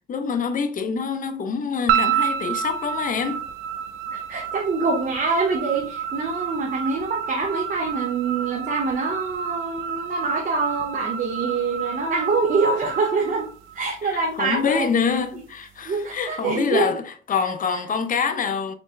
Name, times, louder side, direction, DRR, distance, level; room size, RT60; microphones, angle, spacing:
voice 1, 0.1-3.4 14.0-18.7, left 6 dB, 45° left, 0.6 m, -25 dB
sound 1, 1.9-14.2, right 8 dB, 85° right, 0.5 m, -29 dB
voice 2, 4.1-13.5 13.7-14.9 15.8-16.8, right 4 dB, 45° right, 0.8 m, -25 dB
4.3 x 3.0 x 2.5 m
cardioid pair, 90°, 20 cm